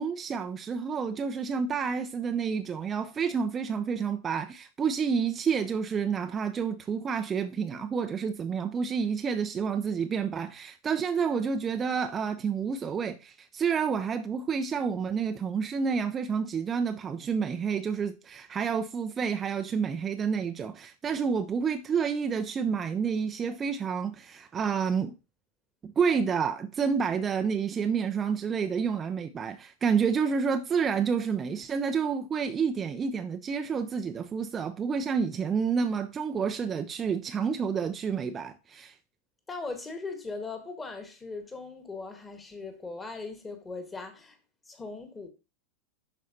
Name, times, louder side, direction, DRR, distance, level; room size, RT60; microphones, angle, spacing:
voice 1, 0.0-25.1 25.8-39.0, right 6 dB, 20° right, 0.4 m, -29 dB
voice 2, 39.5-44.4 44.6-45.3, left 3 dB, 15° left, 1.4 m, -39 dB
11.0 x 4.2 x 2.7 m
figure-of-eight pair, 90°, 0 cm